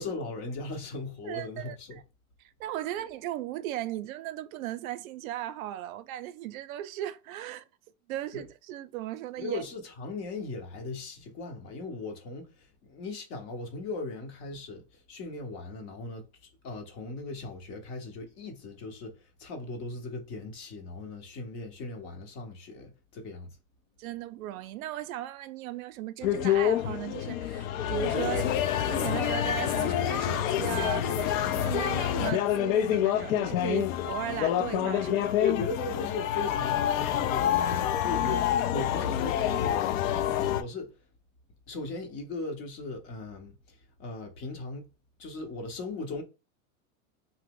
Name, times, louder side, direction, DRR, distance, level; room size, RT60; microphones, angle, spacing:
voice 1, 0.0-2.0 8.3-8.4 9.4-23.5 35.0-40.9 41.7-44.9 45.2-46.2, left 3 dB, 40° left, 0.9 m, -38 dB
voice 2, 1.2-2.0 2.6-7.6 8.1-9.6 24.0-35.2, right 13 dB, 75° right, 0.5 m, -37 dB
sound 1, 26.2-40.6, left 11 dB, 70° left, 0.5 m, -27 dB
2.9 x 2.1 x 3.6 m
supercardioid pair, 150°, 42 cm